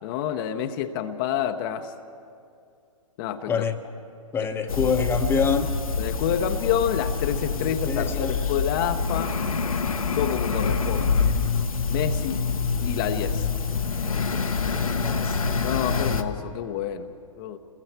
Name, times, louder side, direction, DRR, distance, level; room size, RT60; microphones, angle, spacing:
voice 1, 0.0-1.9 3.2-3.6 4.4-4.8 6.0-9.4 10.1-11.2 11.9-12.4 12.8-13.5 15.6-17.6, left 9 dB, 40° left, 6 dB, 0.9 m, -28 dB
voice 2, 3.5-3.8 4.3-5.8 7.5-8.3 14.9-15.4, left 5 dB, 10° left, 6 dB, 1.0 m, -26 dB
sound 1, 4.7-16.2, left 5 dB, 80° left, 1.2 m, -26 dB
29.0 x 21.5 x 4.6 m, 2.4 s
figure-of-eight pair, 115°, 18 cm